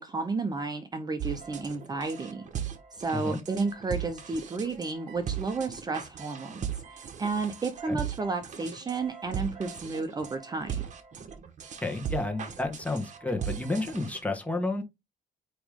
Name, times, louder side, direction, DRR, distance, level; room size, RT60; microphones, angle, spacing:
voice 1, 0.0-2.5 2.9-10.8, right 3 dB, 25° right, 0.8 m, -32 dB
sound 1, 1.2-14.2, right 9 dB, 50° right, 1.3 m, -38 dB
voice 2, 11.8-14.8, left 2 dB, 10° left, 1.4 m, -31 dB
8.7 x 3.1 x 3.6 m
cardioid pair, 115°, 16 cm